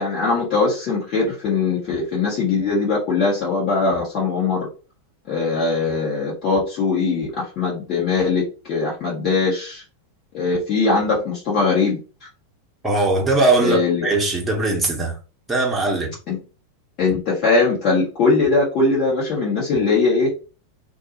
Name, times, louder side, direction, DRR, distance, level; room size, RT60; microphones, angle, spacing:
voice 1, 0.0-4.7 5.3-9.8 10.3-12.0 13.6-14.1 16.3-16.4 17.0-20.3, left 4 dB, 40° left, 1.0 m, -21 dB
voice 2, 12.8-15.1 15.5-16.1, right 2 dB, 10° right, 0.9 m, -20 dB
2.3 x 2.2 x 2.8 m
figure-of-eight pair, 90°, 0 cm